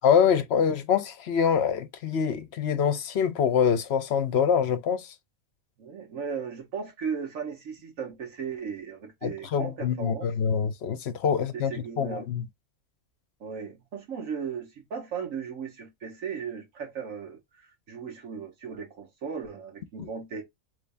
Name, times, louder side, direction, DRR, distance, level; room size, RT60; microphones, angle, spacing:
voice 1, 0.0-5.1 9.2-12.4 20.0-20.1, left 7 dB, 60° left, 0.9 m, -25 dB
voice 2, 5.8-10.3 11.5-12.2 13.4-20.4, right 6 dB, 80° right, 1.6 m, -36 dB
3.4 x 3.3 x 2.5 m
omnidirectional pair, 1.4 m